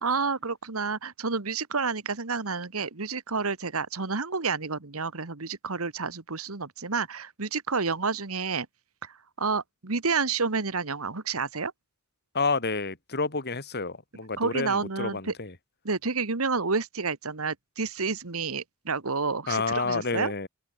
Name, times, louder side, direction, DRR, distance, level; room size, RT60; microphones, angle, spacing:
voice 1, 0.0-8.7 9.0-11.7 14.4-15.3 15.8-20.3, right 4 dB, 75° right, 1.6 m, -29 dB
voice 2, 12.4-15.5 19.5-20.5, left 4 dB, 50° left, 3.5 m, -29 dB
open air
head